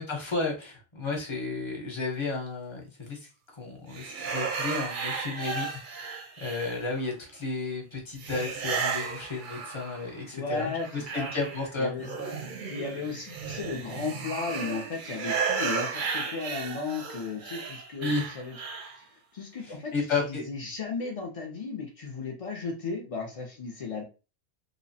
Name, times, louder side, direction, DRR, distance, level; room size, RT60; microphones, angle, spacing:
voice 1, 0.0-3.2 3.5-6.1 6.4-12.2 18.0-18.3 19.9-20.4, left 3 dB, 30° left, 0 dB, 0.7 m, -32 dB
sound 1, 3.9-7.1 8.2-10.2 10.6-19.0, right 5 dB, 60° right, 0.6 m, -34 dB
voice 2, 10.3-11.3 11.8-12.3 12.7-18.6 19.0-24.0, left 4 dB, 60° left, 0 dB, 0.3 m, -35 dB
2.8 x 2.0 x 2.6 m, 0.31 s
omnidirectional pair, 1.1 m